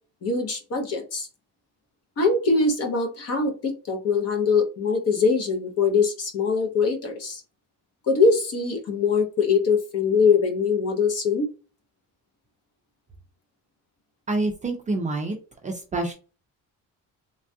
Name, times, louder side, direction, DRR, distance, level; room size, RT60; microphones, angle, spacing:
voice 1, 0.2-1.3 2.2-7.4 8.1-11.5, left 4 dB, 50° left, 4 dB, 0.8 m, -22 dB
voice 2, 14.3-15.4 15.6-16.1, right 2 dB, 25° right, 2 dB, 0.3 m, -27 dB
3.2 x 2.3 x 2.6 m, 0.34 s
cardioid pair, 180°, 33 cm